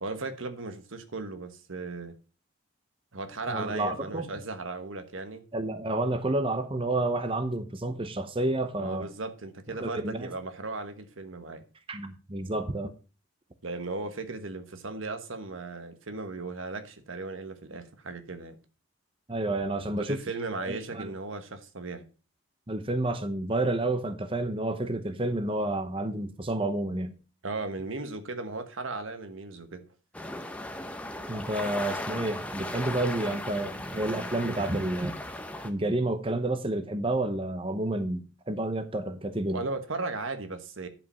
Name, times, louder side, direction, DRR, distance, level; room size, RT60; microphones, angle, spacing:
voice 1, 0.0-2.1 3.1-5.4 8.8-11.6 13.6-18.6 20.1-22.0 27.4-29.9 39.5-40.9, right 3 dB, 85° right, 1.3 m, -36 dB
voice 2, 3.5-4.3 5.5-9.1 9.8-10.3 11.9-12.9 19.3-20.2 20.6-21.1 22.7-27.1 31.3-35.2 35.6-39.6, right 2 dB, 25° right, 0.8 m, -30 dB
sound 1, 30.1-35.7, left 1 dB, 5° left, 0.8 m, -37 dB
10.5 x 5.2 x 5.6 m
head